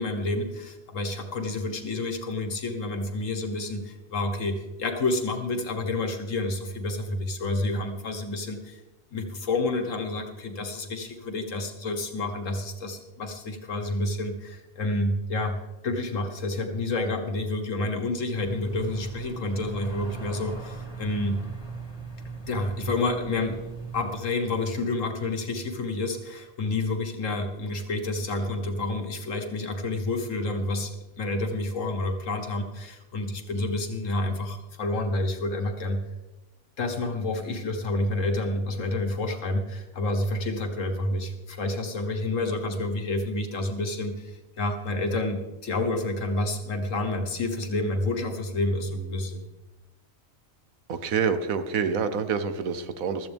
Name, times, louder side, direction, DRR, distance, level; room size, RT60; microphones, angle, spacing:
voice 1, 0.0-8.8 9.1-15.6 15.8-21.4 22.5-23.6 23.9-36.0 36.8-49.5, left 2 dB, 70° left, 4 dB, 1.8 m, -29 dB
sound 1, 18.3-24.2, right 4 dB, 20° left, 2.2 m, -39 dB
voice 2, 50.9-53.3, right 6 dB, 85° right, 11 dB, 1.3 m, -27 dB
15.5 x 13.5 x 3.5 m, 1.1 s
omnidirectional pair, 1.4 m